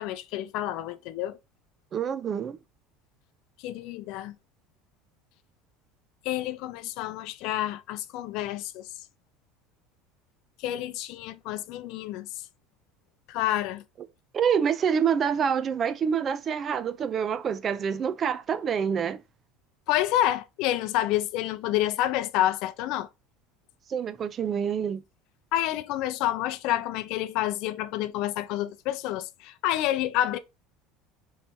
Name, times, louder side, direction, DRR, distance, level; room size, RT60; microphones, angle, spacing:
voice 1, 0.0-1.4 3.6-4.3 6.3-8.9 10.6-12.3 13.3-13.8 19.9-23.1 25.5-30.4, left 13 dB, 65° left, 0.4 m, -28 dB
voice 2, 1.9-2.6 14.3-19.2 23.9-25.0, right 7 dB, 30° right, 0.3 m, -27 dB
3.3 x 3.1 x 4.2 m
supercardioid pair, 135°, 0 cm